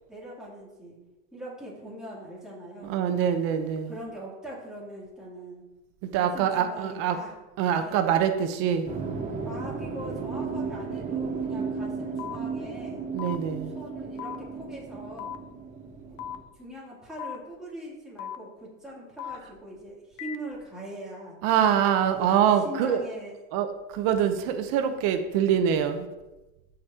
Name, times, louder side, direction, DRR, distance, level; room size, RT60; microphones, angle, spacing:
voice 1, 0.1-1.0 1.3-3.2 3.9-5.6 6.1-7.3 7.7-8.0 9.4-13.0 13.7-15.4 16.1-16.2 16.5-21.4 22.0-23.3, right 1 dB, ahead, -7 dB, 3.0 m, -42 dB
voice 2, 2.8-3.9 6.1-7.2 7.6-8.9 11.6-11.7 13.1-13.7 21.4-23.0 23.5-23.7 23.9-26.1, right 9 dB, 60° right, 8 dB, 0.9 m, -24 dB
sound 1, 8.9-16.4, right 5 dB, 20° right, 1.0 m, -34 dB
sound 2, 12.2-12.4 13.2-13.4 14.2-14.4 15.2-15.4 16.2-16.4 17.2-17.4 18.2-18.4 19.2-19.4 20.2-20.4, left 10 dB, 80° left, 0.8 m, -36 dB
14.5 x 5.2 x 2.9 m, 1.0 s
supercardioid pair, 145°, 39 cm